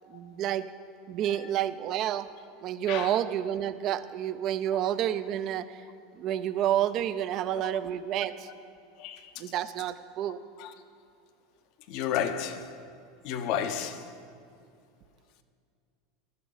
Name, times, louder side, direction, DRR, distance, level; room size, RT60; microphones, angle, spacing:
voice 1, 0.1-0.6 1.1-2.3 2.6-5.8 6.1-8.5 9.4-10.4, right 11 dB, 50° right, 0.6 m, -29 dB
voice 2, 9.0-9.4 10.6-10.7 11.9-12.8 13.2-14.1, left 9 dB, 60° left, 1.0 m, -33 dB
16.0 x 12.5 x 4.1 m
hypercardioid pair, 90°, 0 cm